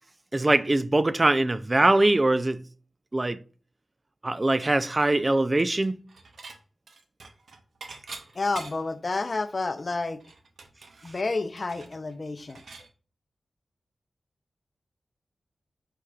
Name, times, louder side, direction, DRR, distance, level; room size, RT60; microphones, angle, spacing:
voice 1, 0.3-2.6 3.1-3.4 4.2-6.0, right 2 dB, 35° right, 0.3 m, -22 dB
Dishes pots and pans / Chink clink, 5.8-6.6 6.9-9.0 9.4-9.5 9.8-12.9, right 3 dB, 80° right, 0.7 m, -45 dB
voice 2, 8.3-10.2 11.0-12.6, left 3 dB, 50° left, 0.5 m, -30 dB
4.7 x 4.3 x 2.3 m
cardioid pair, 45°, 0 cm